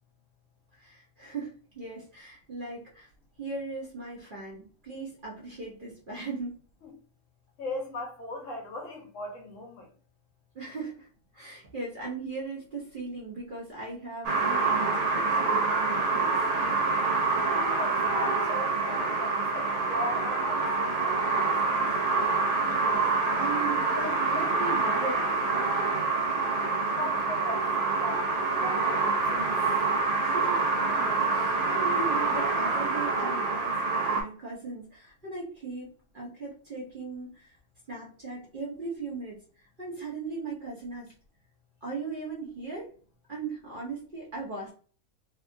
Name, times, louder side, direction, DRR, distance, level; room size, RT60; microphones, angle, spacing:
voice 1, 0.7-3.1 3.4-6.6 10.5-11.1 11.3-16.7 22.7-23.1 23.3-25.7 30.2-30.6 31.0-35.9 36.1-37.5 37.9-41.1 41.8-42.9 43.3-44.7, right 3 dB, 45° right, 0.8 m, -38 dB
voice 2, 7.6-9.9 17.4-21.9 26.9-29.5, left 1 dB, 65° left, 1.0 m, -38 dB
sound 1, 14.2-34.2, right 4 dB, 85° right, 1.2 m, -26 dB
2.8 x 2.3 x 2.5 m
omnidirectional pair, 1.5 m